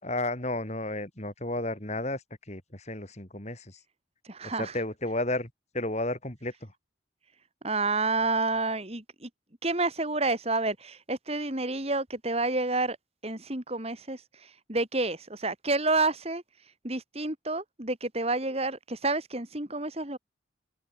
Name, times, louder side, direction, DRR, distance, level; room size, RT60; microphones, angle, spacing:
voice 1, 0.0-3.8 4.4-6.7, left 2 dB, 35° left, 4.2 m, -33 dB
voice 2, 4.3-4.7 7.6-9.3 9.6-13.0 13.2-16.4 16.8-20.2, right 3 dB, 30° right, 2.7 m, -29 dB
head